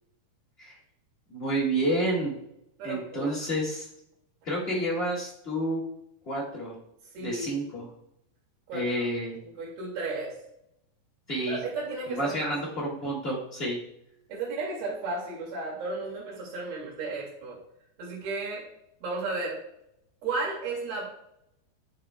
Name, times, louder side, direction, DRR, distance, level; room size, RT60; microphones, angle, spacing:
voice 1, 1.3-2.4 2.8-3.9 4.4-5.8 6.2-6.7 7.2-7.9 8.7-9.4 11.3-11.6 12.1-13.8, right 1 dB, 35° left, -4 dB, 1.0 m, -29 dB
voice 2, 2.8-3.4 7.1-7.6 8.7-8.9 9.4-10.4 11.5-12.7 14.3-17.6 18.0-18.6 19.0-19.6 20.2-21.0, right 3 dB, 85° right, -5 dB, 4.3 m, -34 dB
10.5 x 6.5 x 2.2 m, 0.80 s
omnidirectional pair, 4.5 m